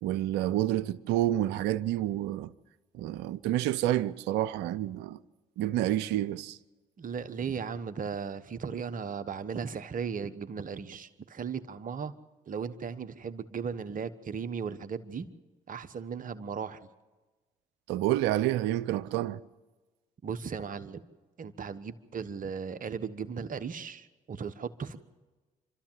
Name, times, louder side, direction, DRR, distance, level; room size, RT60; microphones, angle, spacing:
voice 1, 0.0-2.5 2.9-5.2 5.6-6.6 17.9-19.4, right 13 dB, 80° right, 0.6 m, -29 dB
voice 2, 7.0-12.1 12.5-15.3 15.7-16.8 20.2-21.0 21.4-25.1, right 6 dB, 50° right, 1.3 m, -36 dB
27.0 x 13.0 x 7.5 m
hypercardioid pair, 50°, 18 cm